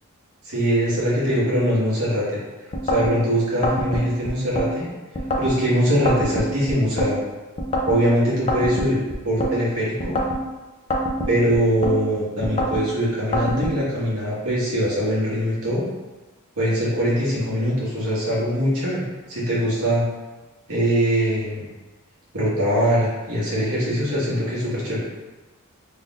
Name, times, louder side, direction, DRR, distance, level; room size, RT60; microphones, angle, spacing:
voice 1, 0.4-2.4 2.8-4.9 5.4-7.2 7.9-9.0 9.2-10.2 11.3-15.8 16.6-19.0 19.3-20.0 20.7-21.7 22.3-25.1, equal, 75° right, -7 dB, 1.5 m, -22 dB
sound 1, 2.7-3.1 3.6-4.7 5.1-5.6 6.0-7.1 7.6-8.0 8.5-9.5 10.0-10.4 10.9-12.0 12.4-12.8 13.3-13.8, equal, 30° left, 0.5 m, -25 dB
3.8 x 3.4 x 2.4 m, 1.2 s
head